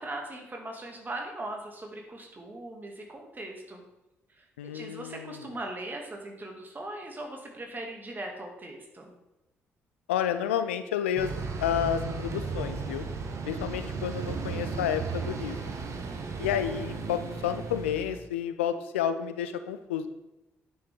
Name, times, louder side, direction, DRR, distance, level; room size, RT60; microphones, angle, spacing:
voice 1, 0.0-3.8 4.3-9.1, right 1 dB, 30° right, 1 dB, 2.1 m, -40 dB
voice 2, 4.6-5.4 10.1-11.3 11.6-13.1 13.5-15.6 16.4-20.1, left 9 dB, 80° left, 11 dB, 0.4 m, -30 dB
sound 1, 11.2-18.2, right 4 dB, 50° right, 1.1 m, -35 dB
9.4 x 6.4 x 3.5 m, 0.97 s
figure-of-eight pair, 40°, 7 cm